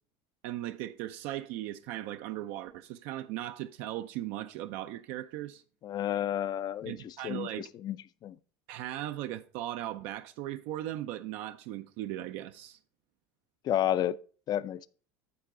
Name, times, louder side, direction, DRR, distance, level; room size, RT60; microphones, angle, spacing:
voice 1, 0.4-5.6 6.9-7.6 8.7-12.8, right 14 dB, 65° right, 0.5 m, -38 dB
voice 2, 5.8-8.0 8.2-8.4 13.6-14.2 14.5-14.9, left 11 dB, 35° left, 0.4 m, -31 dB
9.5 x 6.6 x 3.7 m
supercardioid pair, 120°, 11 cm